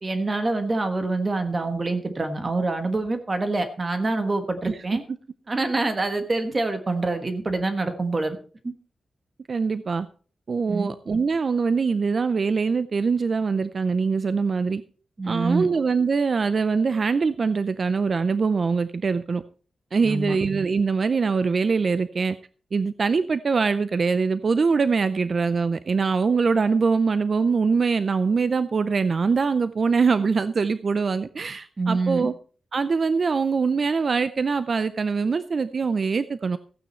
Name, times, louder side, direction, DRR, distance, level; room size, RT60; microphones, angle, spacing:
voice 1, 0.0-5.0 5.5-8.4 8.6-8.7 10.7-10.9 15.2-15.7 20.0-20.4 31.8-32.3, right 3 dB, 30° right, 7 dB, 1.3 m, -26 dB
voice 2, 9.5-10.1 10.5-14.8 15.3-19.4 19.9-22.4 22.7-32.3 32.7-36.6, right 5 dB, 45° right, 13 dB, 0.5 m, -23 dB
15.0 x 9.2 x 4.3 m, 0.41 s
wide cardioid pair, 150°, 0 cm